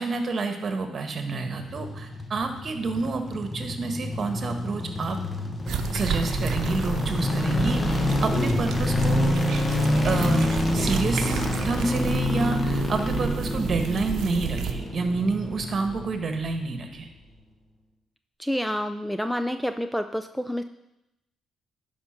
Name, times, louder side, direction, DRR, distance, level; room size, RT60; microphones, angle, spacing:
voice 1, 0.0-5.2 5.9-9.4 10.0-17.1, right 3 dB, 45° right, 6 dB, 1.5 m, -29 dB
sound 1, 1.5-16.7 16.9-17.0, left 1 dB, 25° left, 1.2 m, -27 dB
sound 2, 5.7-14.7, right 7 dB, 75° right, 0.8 m, -31 dB
voice 2, 18.4-20.6, equal, ahead, 8 dB, 0.4 m, -28 dB
11.0 x 5.1 x 5.9 m, 0.87 s
cardioid pair, 90°, 0 cm